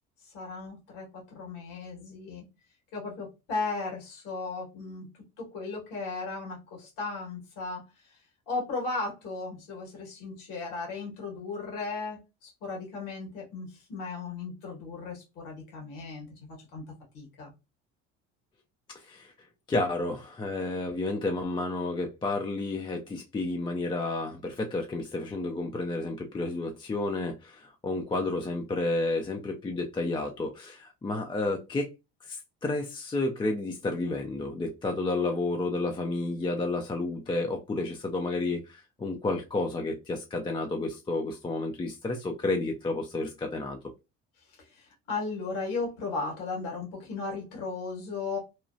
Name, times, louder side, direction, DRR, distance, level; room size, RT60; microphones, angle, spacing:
voice 1, 0.3-2.4 2.9-5.1 5.4-7.8 8.5-16.8 17.1-17.5 44.6-48.4, left 3 dB, 75° left, 1.7 m, -36 dB
voice 2, 18.9-19.3 19.7-31.9 32.2-43.8, left 2 dB, 15° left, 0.4 m, -31 dB
3.0 x 2.2 x 2.6 m
supercardioid pair, 80°, 32 cm